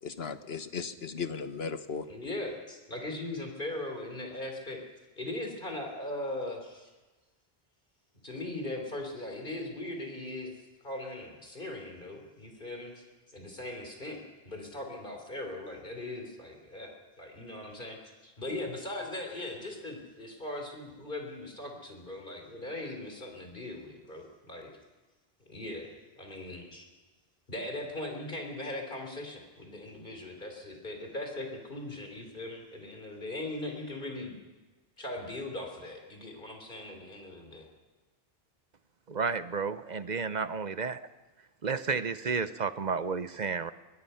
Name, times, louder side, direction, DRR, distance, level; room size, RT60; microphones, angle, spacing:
voice 1, 0.0-2.1, left 5 dB, 75° left, 9 dB, 1.4 m, -36 dB
voice 2, 2.1-4.8 5.2-6.9 8.2-10.5 10.8-16.9 17.2-24.7 25.5-25.9 26.2-26.9 27.5-34.3 35.0-37.7, left 1 dB, 55° left, 2 dB, 3.7 m, -39 dB
voice 3, 39.1-41.0 41.6-43.7, right 5 dB, 50° right, 13 dB, 0.8 m, -31 dB
23.0 x 22.0 x 5.7 m, 1.2 s
omnidirectional pair, 1.1 m